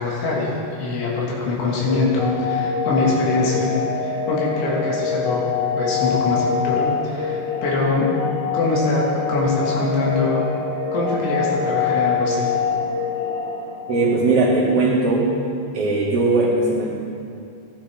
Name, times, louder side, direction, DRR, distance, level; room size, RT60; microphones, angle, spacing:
voice 1, 0.0-5.5 5.8-8.1 8.5-10.4 10.9-12.5, left 3 dB, 85° left, -4 dB, 3.9 m, -23 dB
sound 1, 1.8-14.6, left 6 dB, 40° left, 1.8 m, -25 dB
voice 2, 13.9-15.3 15.7-16.9, right 3 dB, 40° right, -7 dB, 2.6 m, -19 dB
14.5 x 10.0 x 3.4 m, 2.5 s
omnidirectional pair, 4.9 m